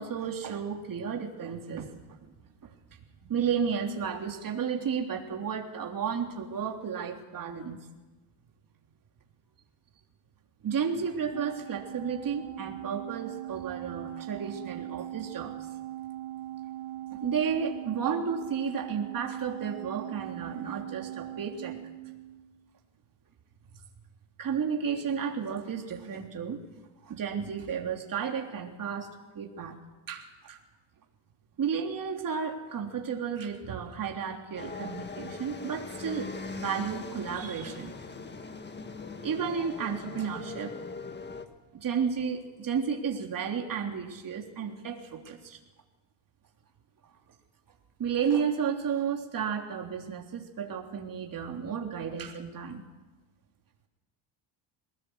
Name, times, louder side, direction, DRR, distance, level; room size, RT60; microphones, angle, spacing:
voice 1, 0.0-2.0 3.2-7.8 10.6-15.5 17.1-21.8 24.4-26.6 27.0-29.1 29.4-29.8 30.1-30.6 31.6-37.9 39.2-40.7 41.7-45.6 48.0-52.9, right 7 dB, 40° right, 2 dB, 3.4 m, -32 dB
Organ, 11.3-22.6, right 14 dB, 70° right, 3.5 m, -40 dB
sound 1, 34.6-41.5, left 4 dB, 20° left, 1.7 m, -41 dB
23.0 x 19.0 x 8.1 m, 1.2 s
cardioid pair, 125°, 50 cm